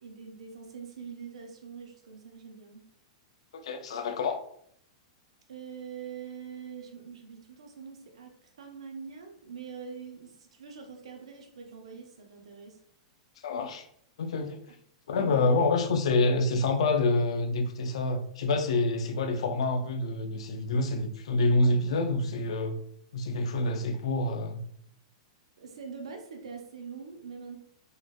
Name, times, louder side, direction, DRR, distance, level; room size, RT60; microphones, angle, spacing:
voice 1, 0.0-2.9 5.5-12.8 15.2-15.6 25.6-27.6, right 6 dB, 75° right, 0.8 m, -44 dB
voice 2, 3.5-4.4 13.4-13.9 14.2-14.6 15.1-22.8 23.1-24.6, left 2 dB, 75° left, 0.5 m, -27 dB
4.0 x 3.2 x 2.3 m
hypercardioid pair, 110°, 3 cm